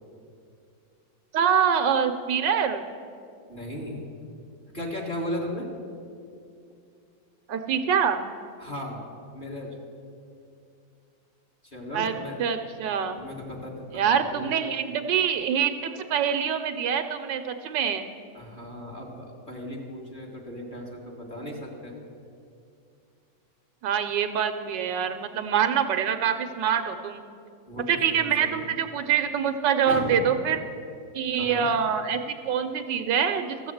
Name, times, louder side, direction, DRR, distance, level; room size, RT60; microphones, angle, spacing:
voice 1, 1.3-2.8 7.5-8.3 11.9-12.1 12.4-13.2 13.9-18.1 23.8-27.2 27.9-30.6 31.1-33.7, right 7 dB, 75° right, 8 dB, 1.2 m, -25 dB
voice 2, 3.5-4.0 4.7-5.7 8.6-9.0 9.3-9.8 11.6-12.4 13.2-14.6 18.3-21.9 27.7-28.7 29.9-30.3 31.4-31.7, left 1 dB, 25° left, -2 dB, 1.9 m, -36 dB
14.5 x 7.1 x 7.7 m, 2.4 s
omnidirectional pair, 2.1 m